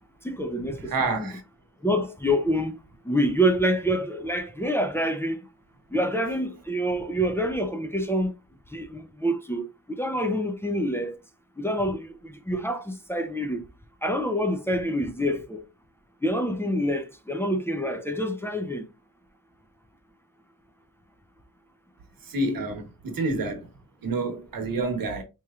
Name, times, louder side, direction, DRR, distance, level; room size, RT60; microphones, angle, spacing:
voice 1, 0.2-1.3 1.8-2.8 3.0-5.4 5.9-8.3 8.7-11.2 11.6-13.6 14.0-15.6 16.2-18.9, equal, 5° left, 0.5 m, -27 dB
voice 2, 0.9-1.4 22.3-23.6 24.0-25.2, right 2 dB, 85° right, 1.0 m, -28 dB
4.4 x 2.9 x 2.3 m
wide cardioid pair, 110°, 33 cm